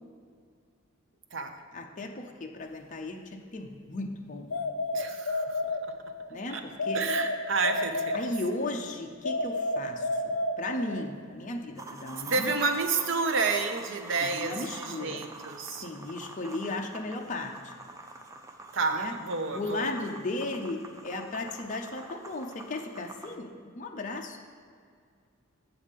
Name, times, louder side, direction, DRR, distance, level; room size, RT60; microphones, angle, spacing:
voice 1, 1.7-4.6 6.3-7.0 8.1-12.5 14.2-15.3 15.7-17.7 18.9-19.1 19.5-24.4, left 2 dB, 35° left, 2 dB, 0.6 m, -36 dB
sound 1, 4.5-6.3 6.8-8.7 9.2-11.1, left 1 dB, 85° left, 0.6 m, -31 dB
voice 2, 4.9-5.8 6.5-6.6 6.9-8.2 12.2-15.9 18.7-19.9, right 4 dB, 60° right, 6 dB, 0.7 m, -30 dB
sound 2, 11.8-23.4, right 2 dB, 15° right, 0.5 m, -46 dB
7.3 x 7.0 x 5.2 m, 2.1 s
head